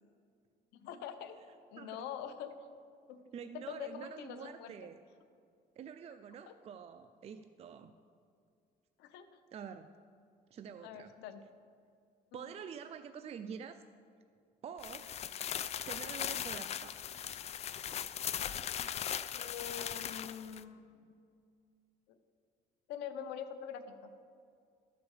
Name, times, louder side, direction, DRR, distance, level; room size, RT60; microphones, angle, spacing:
voice 1, 0.7-1.4 1.7-2.5 3.1-3.2 3.7-4.7 6.5-6.6 9.0-9.4 10.8-11.4 12.3-12.4 19.3-21.0 22.9-23.8, left 8 dB, 90° left, 9 dB, 0.8 m, -44 dB
voice 2, 3.3-4.9 5.8-7.9 9.5-9.9 10.5-11.1 12.3-13.8 14.6-15.1 15.9-17.0, right 7 dB, 35° right, 9 dB, 0.4 m, -47 dB
sound 1, 14.8-20.6, left 9 dB, 40° left, 0.4 m, -39 dB
12.5 x 5.1 x 7.1 m, 2.3 s
cardioid pair, 110°, 17 cm